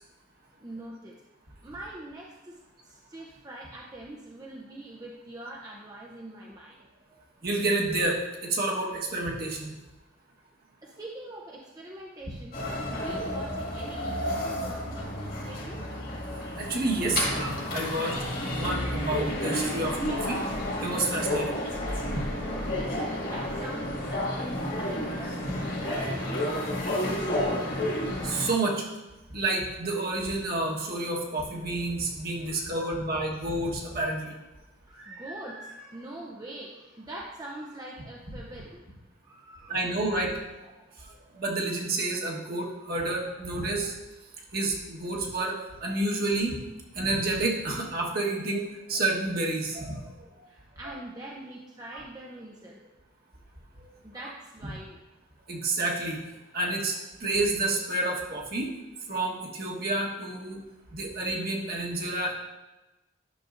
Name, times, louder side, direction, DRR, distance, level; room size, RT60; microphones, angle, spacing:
voice 1, 0.6-1.2 1.6-6.9 10.8-15.8 22.4-23.0 23.2-26.8 32.4-33.1 34.9-38.9 39.2-40.0 40.7-41.0 42.3-42.5 43.6-43.7 50.5-52.8 54.0-55.0, right 1 dB, 20° right, -2 dB, 0.6 m, -43 dB
voice 2, 7.4-9.7 16.6-20.4 20.8-21.6 28.2-28.9 29.3-34.3 39.7-40.3 41.3-43.9 44.5-46.6 46.9-50.0 55.5-56.2 56.5-58.7 59.1-60.6 60.9-62.3, right 2 dB, 50° right, -1 dB, 1.3 m, -29 dB
sound 1, 12.5-28.5, left 1 dB, 45° left, 1.9 m, -31 dB
10.5 x 6.8 x 2.5 m, 1.1 s
head